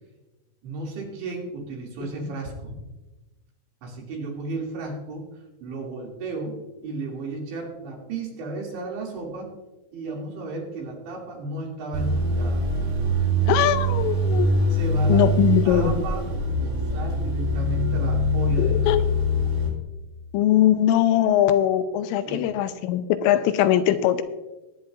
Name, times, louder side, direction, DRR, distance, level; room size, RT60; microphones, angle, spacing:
voice 1, 0.6-2.8 3.8-5.3 5.6-9.5 9.9-12.6 14.7-15.3 15.6-16.3 16.6-19.0 22.2-22.5, right 3 dB, 65° right, -2 dB, 4.7 m, -34 dB
sound 1, 11.9-19.7, equal, 85° right, 7.7 m, -23 dB
voice 2, 13.5-14.6 15.1-16.1 18.6-19.0 20.3-24.2, left 11 dB, 90° left, 10 dB, 3.2 m, -21 dB
20.0 x 9.7 x 2.5 m, 1.1 s
omnidirectional pair, 5.7 m